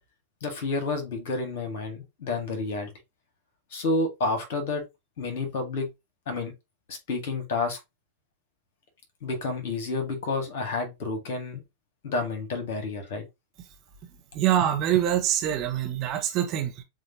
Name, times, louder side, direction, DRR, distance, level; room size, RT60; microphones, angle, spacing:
voice 1, 0.4-2.9 3.7-4.8 5.2-5.9 6.3-6.5 6.9-7.8 9.2-11.6 12.0-13.2, left 3 dB, 50° left, 1.9 m, -30 dB
voice 2, 14.3-16.8, right 11 dB, 35° right, 1.0 m, -25 dB
7.2 x 2.6 x 2.9 m
figure-of-eight pair, 90°, 0 cm